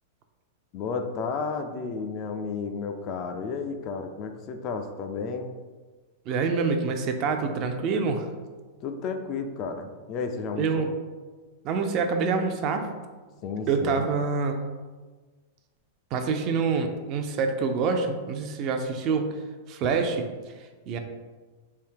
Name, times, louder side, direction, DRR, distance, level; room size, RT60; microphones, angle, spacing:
voice 1, 0.7-5.6 8.8-11.0 13.4-14.1, left 5 dB, 30° left, 6 dB, 0.3 m, -32 dB
voice 2, 6.3-8.3 10.6-10.9 11.6-12.9 13.7-14.6 16.1-19.3 19.7-20.2 20.9-21.0, right 5 dB, 35° right, 6 dB, 0.4 m, -26 dB
3.5 x 2.8 x 4.5 m, 1.3 s
supercardioid pair, 155°, 0 cm